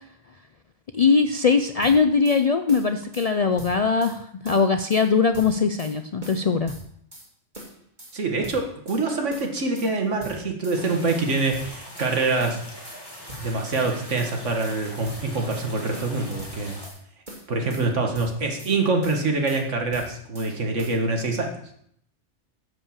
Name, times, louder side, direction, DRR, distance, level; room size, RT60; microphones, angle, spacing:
voice 1, 0.9-6.7, left 5 dB, 55° left, 8 dB, 0.4 m, -21 dB
sound 1, 1.8-2.4 2.7-3.3 3.6-4.2 4.5-5.1 5.3-5.9 6.2-7.3 7.5-8.1 8.4-9.0 9.3-9.9 10.2-10.8 11.1-12.1 12.4-13.0 13.3-13.9 14.2-14.8 15.0-15.7 15.9-17.0 17.3-17.9 18.1-18.7 19.0-19.6 19.9-20.5 20.8-21.0, equal, 40° right, 2.4 m, -42 dB
voice 2, 8.1-12.6 13.4-16.8 17.5-21.6, right 3 dB, 85° right, 3 dB, 2.0 m, -25 dB
sound 2, 10.7-16.9, left 1 dB, 20° left, 2.4 m, -42 dB
9.6 x 5.6 x 7.3 m, 0.68 s
omnidirectional pair, 1.2 m